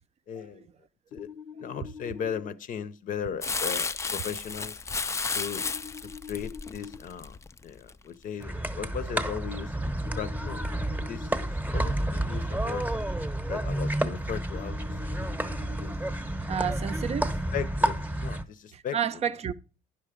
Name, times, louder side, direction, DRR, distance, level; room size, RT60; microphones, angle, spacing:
voice 1, 0.3-0.7 1.1-1.3 1.6-4.8 5.3-5.6 6.0-7.4 7.6-9.8 10.2-10.8 11.1-12.9 13.4-15.2 15.8-15.9 16.5-16.8 17.5-19.2, left 8 dB, 50° left, 0.6 m, -37 dB
sound 1, 1.1-2.5 5.6-7.0 10.1-11.4 14.5-15.9, left 7 dB, 90° left, 0.8 m, -44 dB
Crumpling crinkling, 3.4-7.9 8.4-8.5, left 4 dB, 15° left, 0.3 m, -33 dB
sound 2, 8.4-18.4, right 1 dB, 10° right, 0.8 m, -30 dB
voice 2, 16.5-17.4 18.7-19.5, right 8 dB, 40° right, 0.5 m, -30 dB
10.5 x 5.7 x 5.0 m
cardioid pair, 110°, 17 cm